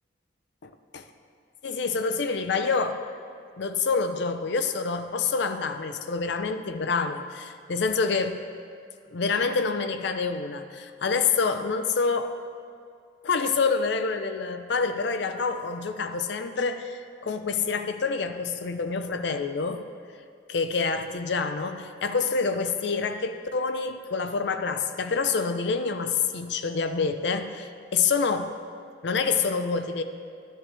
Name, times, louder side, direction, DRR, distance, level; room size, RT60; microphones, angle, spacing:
voice 1, 0.6-1.0 1.6-3.0 3.6-8.5 9.1-12.4 13.2-19.8 20.5-28.6 29.0-30.0, left 4 dB, 65° left, 8 dB, 0.5 m, -27 dB
11.0 x 9.9 x 3.3 m, 2.3 s
head